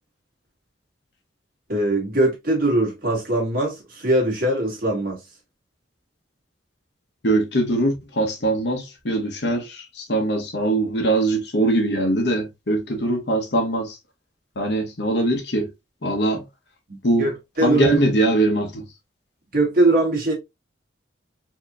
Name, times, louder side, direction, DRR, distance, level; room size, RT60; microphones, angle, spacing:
voice 1, 1.7-5.2 17.2-17.3 17.6-18.0 19.5-20.3, right 2 dB, 50° right, 1.9 m, -21 dB
voice 2, 7.2-14.0 14.6-15.7 16.0-16.4 17.0-17.3 17.6-18.8, right 1 dB, 65° left, 1.0 m, -22 dB
4.6 x 3.0 x 2.4 m
head